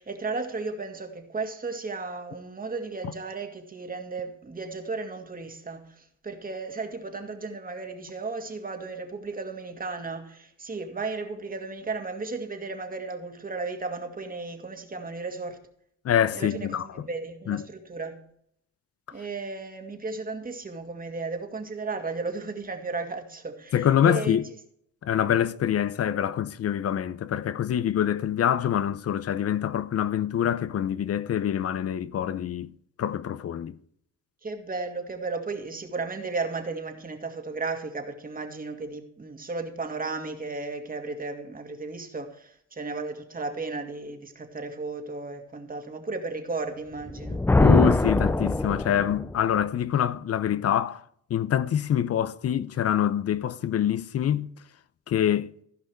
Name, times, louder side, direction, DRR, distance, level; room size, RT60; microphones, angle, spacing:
voice 1, 0.0-15.6 16.3-18.2 19.1-24.4 26.1-26.2 34.4-47.5, right 3 dB, 30° right, 2.0 m, -34 dB
voice 2, 16.0-17.1 17.5-17.6 23.7-24.5 25.0-32.7 33.0-33.8 47.6-51.0 51.3-54.5 55.1-55.5, left 10 dB, 50° left, 0.7 m, -25 dB
Thunder, 47.0-49.4, left 2 dB, 10° left, 0.4 m, -22 dB
15.5 x 5.5 x 4.7 m
cardioid pair, 90°, 30 cm